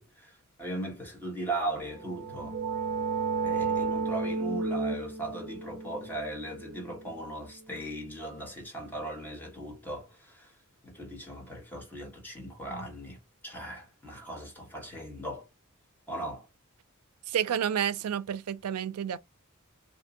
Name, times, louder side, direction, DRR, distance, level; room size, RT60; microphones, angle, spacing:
voice 1, 0.0-2.6 3.4-10.5 10.8-15.5 16.1-16.5, right 1 dB, 10° left, 1.2 m, -38 dB
sound 1, 1.9-7.5, right 4 dB, 40° right, 0.6 m, -33 dB
voice 2, 17.3-19.2, right 9 dB, 85° right, 0.4 m, -30 dB
2.7 x 2.6 x 3.7 m
head